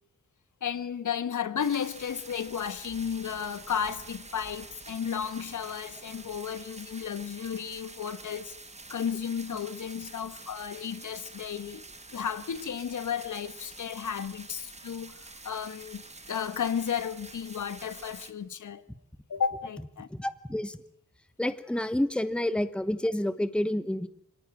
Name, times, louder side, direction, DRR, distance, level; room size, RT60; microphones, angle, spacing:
voice 1, 0.6-8.5 8.9-11.8 12.1-18.8 19.3-20.1, left 7 dB, 70° left, 1.4 m, -33 dB
sound 1, 1.6-18.3, right 2 dB, 20° right, 2.2 m, -47 dB
voice 2, 20.1-20.8 21.4-24.1, left 1 dB, 5° left, 1.2 m, -29 dB
25.5 x 17.5 x 8.9 m
wide cardioid pair, 145°, 31 cm